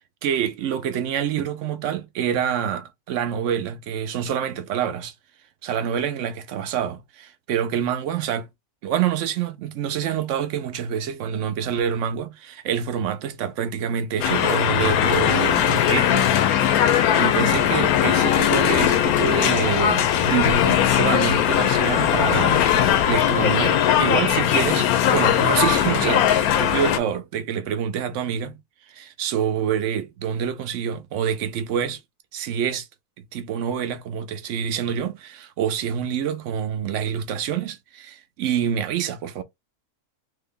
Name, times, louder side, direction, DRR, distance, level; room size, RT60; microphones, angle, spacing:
voice 1, 0.2-5.1 5.6-8.5 8.8-16.3 17.1-28.6 28.9-32.0 32.3-32.9 33.3-39.4, right 8 dB, 65° right, 0.8 m, -26 dB
sound 1, 14.2-27.0, left 10 dB, 80° left, 1.0 m, -19 dB
3.3 x 2.2 x 3.5 m
omnidirectional pair, 1.6 m